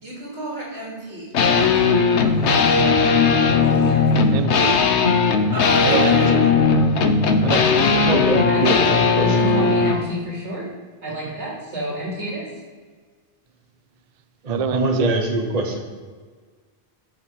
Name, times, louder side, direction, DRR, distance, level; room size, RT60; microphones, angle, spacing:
voice 1, 0.0-1.9 2.2-2.5 3.6-4.2 5.5-6.3 8.5-10.7 11.0-12.5, right 1 dB, 85° right, -4 dB, 3.1 m, -30 dB
sound 1, 1.3-10.0, left 4 dB, 80° left, 1.1 m, -17 dB
voice 2, 4.3-4.8 5.8-6.5 7.4-7.6 14.5-15.2, right 7 dB, 65° right, 13 dB, 0.3 m, -26 dB
voice 3, 8.1-9.7 14.4-15.8, right 2 dB, 35° right, 2 dB, 1.2 m, -23 dB
11.5 x 6.5 x 4.8 m, 1.5 s
omnidirectional pair, 1.1 m